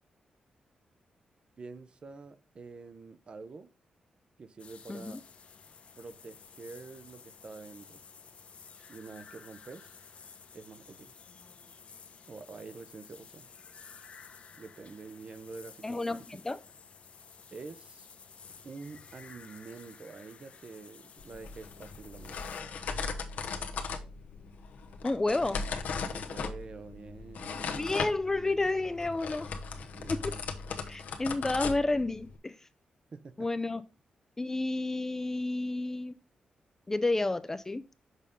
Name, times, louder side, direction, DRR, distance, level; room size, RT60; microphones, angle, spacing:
voice 1, 1.6-3.7 4.4-5.2 6.0-8.0 8.9-9.9 10.5-11.1 12.3-13.5 14.6-16.2 17.5-18.1 18.6-22.4 26.1-28.1 29.7-30.4 33.1-33.5, right 4 dB, 40° right, 0.6 m, -47 dB
sound 1, 4.6-22.6, left 6 dB, 50° left, 0.7 m, -53 dB
voice 2, 4.9-5.2 15.8-16.6 25.0-25.6 27.7-29.5 30.1-30.3 30.9-32.6 33.4-33.8 34.4-36.2 36.9-37.8, left 2 dB, 15° left, 0.3 m, -30 dB
sound 2, 21.2-32.4, left 5 dB, 85° left, 0.9 m, -38 dB
6.5 x 5.2 x 3.6 m
wide cardioid pair, 145°, 3 cm